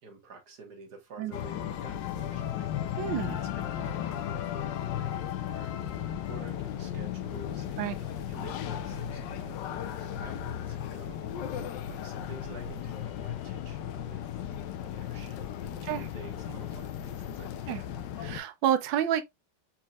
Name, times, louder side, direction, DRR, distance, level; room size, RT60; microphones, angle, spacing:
voice 1, 0.0-5.1 5.5-11.3 11.9-14.4 14.8-17.8, right 3 dB, 60° right, 1.9 m, -50 dB
sound 1, 1.3-18.4, left 10 dB, 80° left, 1.3 m, -35 dB
voice 2, 3.0-3.4 7.8-8.0 15.8-16.0 17.7-17.8 18.2-19.2, right 10 dB, 85° right, 1.4 m, -29 dB
4.5 x 4.3 x 2.3 m
omnidirectional pair, 2.0 m